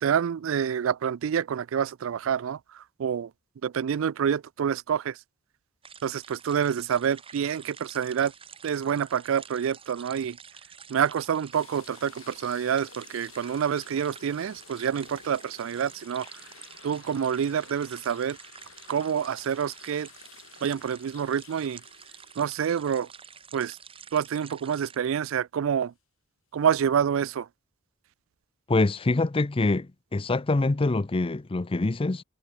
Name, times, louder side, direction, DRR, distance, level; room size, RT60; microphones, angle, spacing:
voice 1, 0.0-2.6 3.0-3.3 3.6-5.2 6.0-8.3 8.6-10.4 10.9-16.3 16.8-18.4 18.9-20.1 20.6-21.8 22.4-23.1 23.5-23.8 24.1-25.9 26.5-27.5, right 8 dB, 65° right, 0.4 m, -27 dB
sound 1, 5.8-25.0, right 7 dB, 25° right, 1.1 m, -49 dB
sound 2, 11.5-23.7 24.2-24.3 26.6-26.8, left 8 dB, 75° left, 1.9 m, -53 dB
voice 2, 28.7-32.2, left 2 dB, 25° left, 0.6 m, -25 dB
head